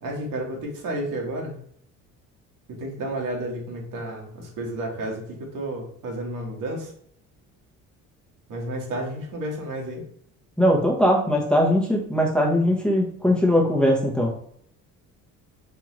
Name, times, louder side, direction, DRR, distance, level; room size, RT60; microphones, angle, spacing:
voice 1, 0.0-1.6 2.7-6.9 8.5-10.0, right 1 dB, 70° right, -1 dB, 1.5 m, -31 dB
voice 2, 10.6-14.3, equal, 5° left, -2 dB, 1.1 m, -20 dB
3.8 x 3.4 x 3.1 m, 0.66 s
cardioid pair, 90°, 33 cm